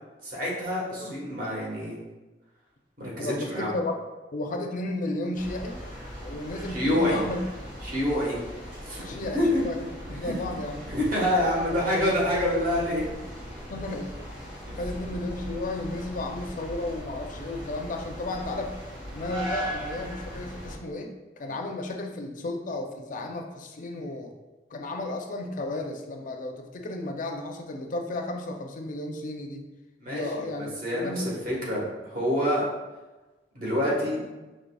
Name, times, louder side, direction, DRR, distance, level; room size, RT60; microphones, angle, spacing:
voice 1, 0.2-2.0 3.0-3.7 6.7-7.2 7.8-8.4 8.8-9.6 10.1-10.3 10.9-13.0 14.7-14.8 30.0-31.1 31.4-32.6 33.5-34.2, left 1 dB, 55° right, -5 dB, 1.3 m, -27 dB
voice 2, 3.2-3.9 4.3-5.8 6.2-7.4 9.0-10.9 11.5-11.8 13.7-14.5 14.8-18.8 19.1-24.3 24.7-29.6 30.1-31.5, left 2 dB, 50° left, 3 dB, 0.4 m, -33 dB
sound 1, 5.3-20.8, equal, 30° right, 1.4 m, -39 dB
5.2 x 3.1 x 2.2 m, 1.2 s
head